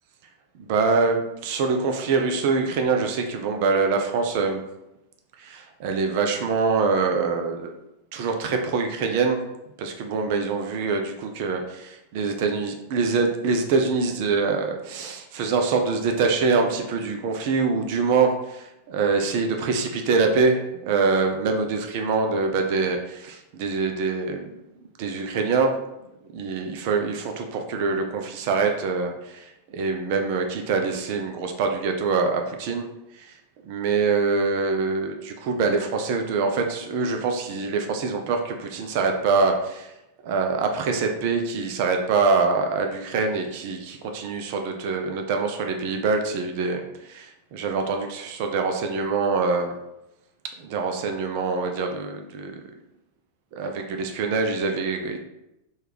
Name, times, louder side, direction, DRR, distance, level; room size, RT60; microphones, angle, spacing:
voice 1, 0.7-4.6 5.4-7.7 8.1-9.4 9.8-24.5 25.0-25.7 26.3-32.9 33.2-33.3 33.6-39.9 40.2-49.8 50.6-52.6 53.5-55.2, right 4 dB, 50° right, 4 dB, 0.3 m, -24 dB
3.2 x 2.3 x 3.3 m, 0.89 s
figure-of-eight pair, 90°, 0 cm